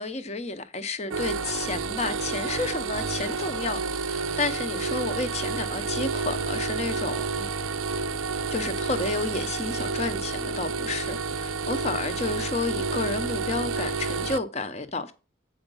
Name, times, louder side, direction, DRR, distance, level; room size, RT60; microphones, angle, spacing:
voice 1, 0.0-7.5 8.5-15.1, left 3 dB, 30° left, 0.7 m, -31 dB
sound 1, 1.1-14.4, right 4 dB, 75° right, 0.5 m, -30 dB
8.0 x 5.0 x 5.3 m
head